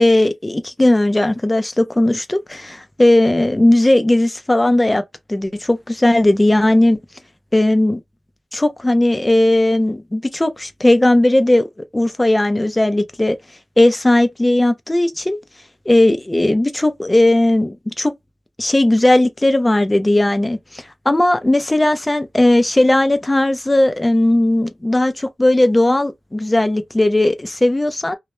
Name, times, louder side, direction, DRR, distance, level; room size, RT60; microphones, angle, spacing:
voice 1, 0.0-5.0 5.3-7.0 7.5-8.0 8.5-11.7 11.9-13.4 13.8-15.4 15.9-18.1 18.6-28.2, left 1 dB, 15° left, 0.4 m, -16 dB
2.1 x 2.1 x 2.9 m
wide cardioid pair, 140°, 0 cm